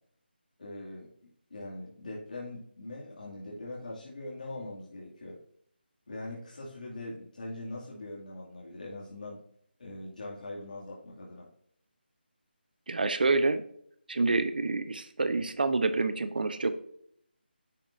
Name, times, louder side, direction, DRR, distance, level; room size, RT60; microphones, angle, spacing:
voice 1, 0.6-1.1 1.5-5.4 6.1-9.4 9.8-11.5, left 2 dB, 50° left, -5 dB, 2.6 m, -41 dB
voice 2, 12.9-13.6 14.1-16.7, right 3 dB, 55° right, 11 dB, 1.0 m, -27 dB
9.9 x 7.5 x 2.7 m, 0.67 s
figure-of-eight pair, 175°, 6 cm